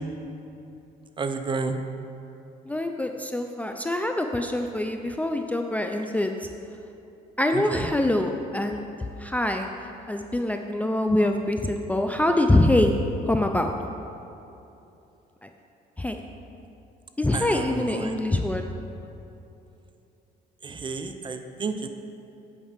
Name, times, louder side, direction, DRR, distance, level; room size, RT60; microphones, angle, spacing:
voice 1, 1.2-1.8 7.5-7.9 17.3-18.1 20.6-21.9, right 4 dB, 30° right, 7 dB, 0.7 m, -31 dB
voice 2, 2.7-6.5 7.4-8.9 9.2-9.7 10.1-13.0 13.3-13.7 15.4-15.5 16.0-16.2 17.2-18.6, left 1 dB, 10° left, 4 dB, 0.4 m, -24 dB
8.8 x 5.4 x 6.7 m, 2.8 s
cardioid pair, 110°, 17 cm